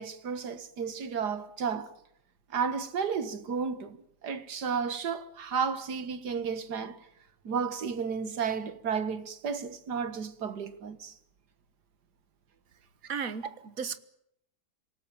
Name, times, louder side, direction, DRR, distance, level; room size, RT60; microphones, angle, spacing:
voice 1, 0.0-1.9 2.5-7.0 7.4-11.1, right 6 dB, 75° right, 2.1 m, -33 dB
voice 2, 13.1-14.0, right 6 dB, 60° right, 1.8 m, -35 dB
27.5 x 18.5 x 8.9 m
omnidirectional pair, 1.8 m